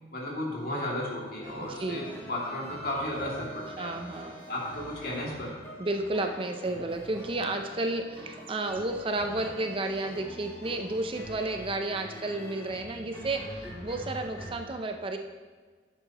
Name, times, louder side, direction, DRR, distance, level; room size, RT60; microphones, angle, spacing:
voice 1, 0.1-3.9 4.5-5.5, left 1 dB, 55° left, -4 dB, 2.3 m, -34 dB
sound 1, 1.4-14.5, equal, 20° left, 2.6 m, -45 dB
voice 2, 1.6-2.0 3.8-4.4 5.8-15.2, right 2 dB, 30° right, 5 dB, 0.5 m, -32 dB
11.0 x 8.2 x 2.9 m, 1.5 s
head